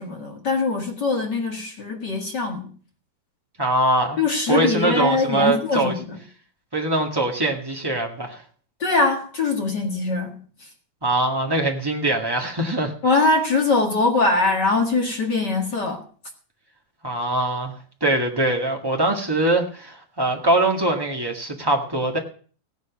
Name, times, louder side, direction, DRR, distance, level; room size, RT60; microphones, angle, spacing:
voice 1, 0.0-2.7 4.2-6.2 8.8-10.7 13.0-16.0, left 3 dB, 35° left, 2 dB, 2.0 m, -22 dB
voice 2, 3.6-4.2 4.5-5.9 6.7-8.4 11.0-12.9 17.0-17.7 18.0-22.2, right 2 dB, 15° right, 2 dB, 0.9 m, -22 dB
16.5 x 9.5 x 6.1 m, 0.42 s
omnidirectional pair, 4.0 m